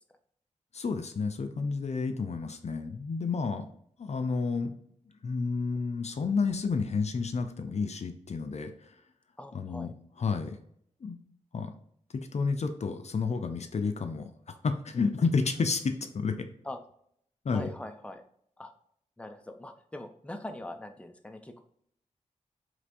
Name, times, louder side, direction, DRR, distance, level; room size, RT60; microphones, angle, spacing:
voice 1, 0.7-3.7 4.0-4.7 5.2-8.9 9.5-10.6 11.0-11.2 11.5-11.7 12.1-16.5 17.4-17.7, left 4 dB, 60° left, 7 dB, 0.5 m, -31 dB
voice 2, 9.4-9.9 16.6-16.8 17.5-18.2 18.6-18.7 19.2-21.6, left 1 dB, 10° left, 6 dB, 0.6 m, -42 dB
4.9 x 3.3 x 2.6 m, 0.67 s
cardioid pair, 65°, 13 cm